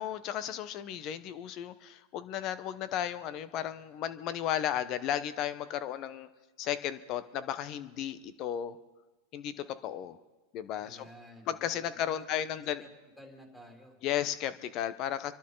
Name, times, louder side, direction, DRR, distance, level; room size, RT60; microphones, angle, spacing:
voice 1, 0.0-6.3 6.6-8.8 9.3-10.2 10.5-11.1 11.5-12.8 14.0-15.3, left 10 dB, 45° left, 13 dB, 1.0 m, -34 dB
voice 2, 10.8-12.9 13.2-14.0, left 1 dB, 5° left, 0 dB, 3.8 m, -52 dB
28.0 x 12.0 x 4.0 m, 1.2 s
hypercardioid pair, 120°, 0 cm